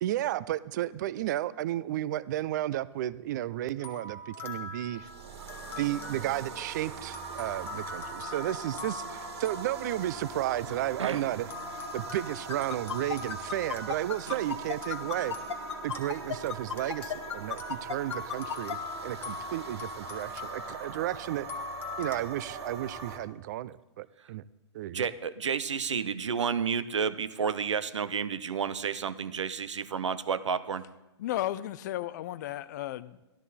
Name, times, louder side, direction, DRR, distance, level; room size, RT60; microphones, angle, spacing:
voice 1, 0.0-5.1 5.8-11.5 11.9-15.4 15.8-18.8 19.0-21.5 22.0-24.4 24.7-25.1, right 13 dB, 40° right, 0.4 m, -33 dB
sound 1, 3.8-10.9 11.5-22.2, left 3 dB, 15° left, 1.4 m, -43 dB
sound 2, 4.9-23.2, right 5 dB, 65° right, 2.0 m, -42 dB
sound 3, 12.5-18.7, left 8 dB, 75° left, 0.9 m, -33 dB
voice 2, 24.9-30.9, right 6 dB, 90° right, 0.8 m, -31 dB
voice 3, 31.2-33.3, left 13 dB, 40° left, 0.5 m, -34 dB
13.0 x 12.5 x 4.2 m
hypercardioid pair, 145°, 15 cm